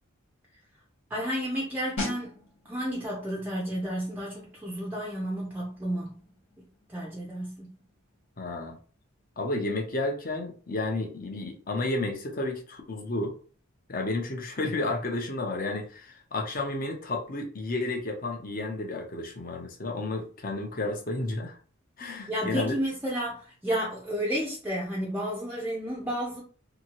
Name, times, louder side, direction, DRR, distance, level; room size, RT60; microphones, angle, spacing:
voice 1, 1.1-2.3 2.7-6.1 6.9-7.7 22.3-26.4, equal, 10° right, -3 dB, 0.5 m, -31 dB
sound 1, 2.0-12.5 12.7-13.0, left 2 dB, 80° left, 1.2 m, -44 dB
voice 2, 8.4-8.8 9.4-13.4 13.9-21.6 22.0-22.8, left 2 dB, 40° left, 2 dB, 0.7 m, -31 dB
2.8 x 2.7 x 2.9 m, 0.40 s
head